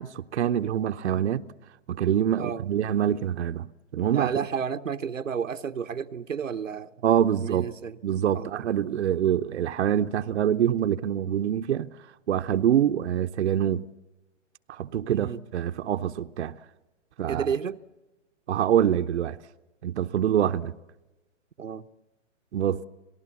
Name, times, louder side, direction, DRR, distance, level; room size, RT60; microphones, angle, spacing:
voice 1, 0.0-1.4 1.9-3.7 3.9-4.3 7.0-7.7 8.0-11.9 12.3-13.8 14.7-16.6 17.2-17.5 18.5-19.4 19.8-20.7 22.5-22.8, right 10 dB, 60° right, 0.8 m, -25 dB
voice 2, 4.1-6.9 7.4-8.0 8.3-8.7 15.1-15.4 17.3-17.8 21.6-21.9, right 7 dB, 90° right, 1.0 m, -31 dB
27.5 x 18.5 x 7.3 m
hypercardioid pair, 135°, 38 cm